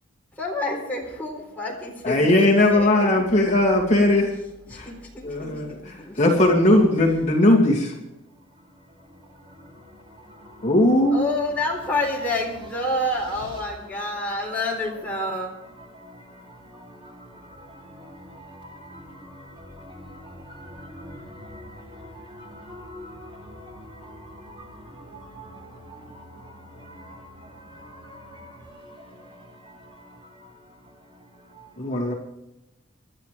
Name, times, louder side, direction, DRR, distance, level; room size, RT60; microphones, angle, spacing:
voice 1, 0.4-3.1 4.7-6.2 11.1-15.5, left 2 dB, 10° left, 3.9 m, -28 dB
voice 2, 2.0-4.3 4.7-4.9 5.2-7.9 10.6-11.2 31.8-32.1, left 1 dB, 35° left, 2.5 m, -19 dB
voice 3, 9.4-10.7 14.3-14.4 15.6-30.5 31.4-31.9, equal, 25° right, 3.0 m, -44 dB
25.5 x 12.0 x 3.4 m
head